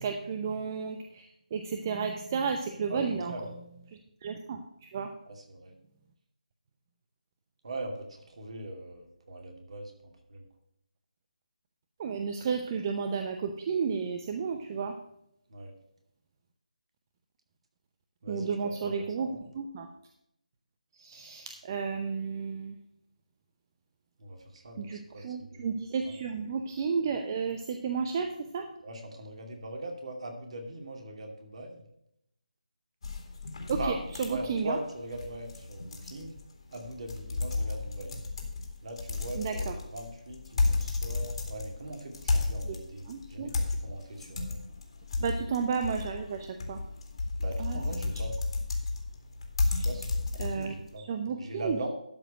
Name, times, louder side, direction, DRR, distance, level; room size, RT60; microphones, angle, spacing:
voice 1, 0.0-3.3 4.2-5.1 12.0-15.0 18.3-19.3 19.5-19.9 21.0-22.8 24.8-28.7 33.7-34.8 39.4-39.7 42.6-42.7 43.1-43.5 45.2-46.8 47.6-48.1 49.7-49.9 50.4-51.8, right 5 dB, 25° right, 6 dB, 0.6 m, -32 dB
voice 2, 5.4-5.7 7.6-10.4 15.5-15.7 18.2-18.9 19.2-19.4 24.2-25.7 26.0-26.1 28.8-31.8 33.8-34.0 34.3-36.3 36.7-38.2 38.8-44.6 45.2-45.5 47.4-48.4 49.8-51.0 51.4-51.9, right 1 dB, 50° right, 3 dB, 2.5 m, -41 dB
sound 1, 33.0-50.9, left 3 dB, 45° left, 2.2 m, -33 dB
12.5 x 4.9 x 6.2 m, 0.79 s
figure-of-eight pair, 160°, 4 cm